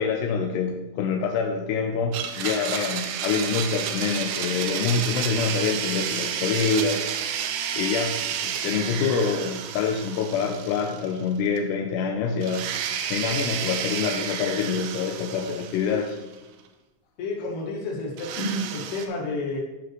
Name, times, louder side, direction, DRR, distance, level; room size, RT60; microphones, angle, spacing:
voice 1, 0.0-7.0 7.8-12.7 13.1-16.2, left 5 dB, 85° left, 1 dB, 2.8 m, -26 dB
Domestic sounds home sounds, 2.1-11.3 11.6-11.7 12.4-16.4 18.2-19.1, right 8 dB, 85° right, 2.5 m, -31 dB
voice 2, 17.2-19.6, left 2 dB, 70° left, -3 dB, 4.0 m, -30 dB
13.5 x 5.9 x 3.2 m, 1.0 s
omnidirectional pair, 4.9 m